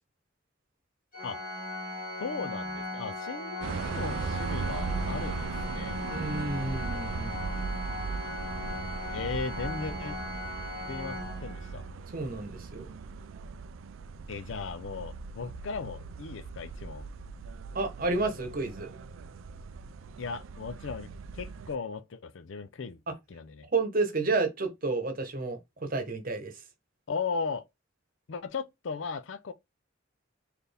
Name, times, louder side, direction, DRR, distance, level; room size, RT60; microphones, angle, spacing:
Organ, 1.1-12.0, left 1 dB, 45° left, 1.9 m, -38 dB
voice 1, 2.2-6.0 9.1-10.2 10.9-11.8 14.3-17.1 20.2-21.1 21.3-23.0 23.3-23.7 27.1-27.6 28.3-29.5, left 5 dB, 70° left, 0.5 m, -37 dB
sound 1, 3.6-21.7, right 5 dB, 85° right, 0.4 m, -38 dB
voice 2, 6.1-7.4 12.1-12.9 17.7-18.9 23.7-26.5, right 3 dB, 45° right, 1.0 m, -31 dB
4.2 x 2.6 x 3.4 m
head